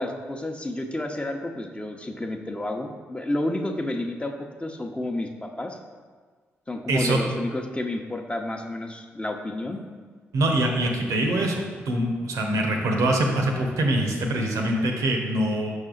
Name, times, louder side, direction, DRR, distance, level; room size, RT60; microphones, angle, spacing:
voice 1, 0.0-4.3 4.6-5.8 6.7-9.8, left 1 dB, 20° left, 3 dB, 0.9 m, -30 dB
voice 2, 6.9-7.2 10.3-15.8, right 1 dB, 70° right, 2 dB, 0.9 m, -24 dB
5.6 x 5.3 x 3.9 m, 1.5 s
hypercardioid pair, 40°, 6 cm